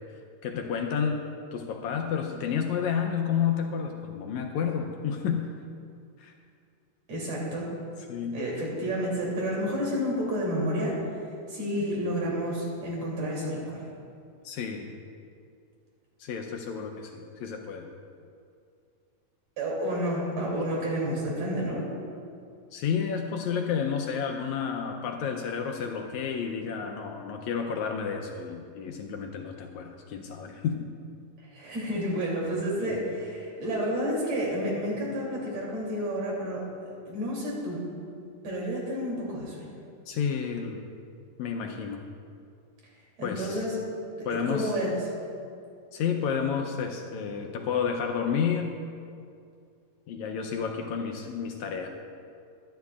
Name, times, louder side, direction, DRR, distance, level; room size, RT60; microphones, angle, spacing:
voice 1, 0.4-1.2 1.5-5.5 6.2-6.3 8.1-8.4 11.8-11.9 14.4-14.9 16.2-17.9 22.7-30.9 32.8-33.0 40.1-40.8 41.4-42.0 43.2-43.7 44.3-44.8 45.9-48.7 50.1-51.9, left 7 dB, 75° left, 3 dB, 1.8 m, -30 dB
voice 2, 7.1-7.7 8.3-11.0 11.5-13.8 19.6-21.8 31.5-36.6 37.1-37.8 38.4-39.7 43.2-43.8 44.2-45.1, equal, 55° right, -4 dB, 4.0 m, -30 dB
23.0 x 10.5 x 2.4 m, 2.4 s
omnidirectional pair, 3.8 m